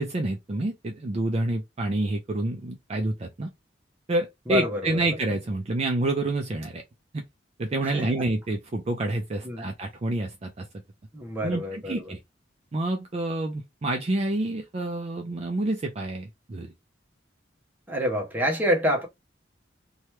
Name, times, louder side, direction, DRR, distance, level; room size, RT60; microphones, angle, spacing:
voice 1, 0.0-3.5 4.1-6.8 7.1-7.2 7.6-10.7 11.4-12.2 12.7-16.7, right 2 dB, 35° right, 0.4 m, -28 dB
voice 2, 4.5-5.2 7.8-8.2 9.4-9.7 11.1-12.1 17.9-19.1, equal, 10° right, 0.8 m, -27 dB
2.9 x 2.2 x 3.1 m
head